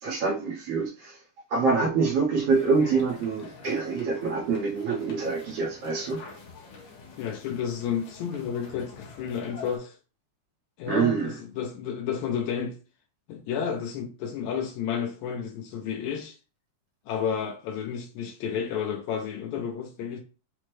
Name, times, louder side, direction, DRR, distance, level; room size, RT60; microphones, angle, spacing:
voice 1, 0.0-1.2 1.5-6.2 10.8-11.3, right 4 dB, 70° right, 1.7 m, -26 dB
sound 1, 2.5-9.8, left 4 dB, 65° left, 2.1 m, -47 dB
voice 2, 7.2-10.0 10.8-12.8 13.3-16.4 17.1-20.2, left 7 dB, 80° left, 1.9 m, -31 dB
5.9 x 2.1 x 3.1 m
omnidirectional pair, 3.3 m